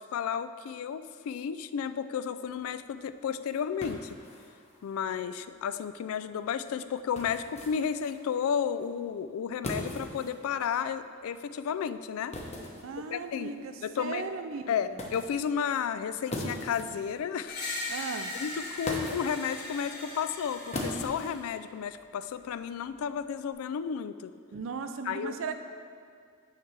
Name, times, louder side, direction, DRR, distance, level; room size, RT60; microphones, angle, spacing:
voice 1, 0.0-4.1 4.8-12.4 13.1-13.5 13.8-14.2 14.7-17.5 18.0-18.1 18.3-24.3 25.0-25.4, left 7 dB, 80° left, 12 dB, 0.3 m, -32 dB
sound 1, 2.5-22.1, left 1 dB, 30° left, 0.9 m, -43 dB
voice 2, 12.8-13.7 14.0-15.0 17.9-18.3 24.5-25.6, right 5 dB, 65° right, 8 dB, 0.5 m, -37 dB
Screech, 17.5-21.5, left 2 dB, 50° left, 1.8 m, -39 dB
9.4 x 3.3 x 5.9 m, 2.2 s
head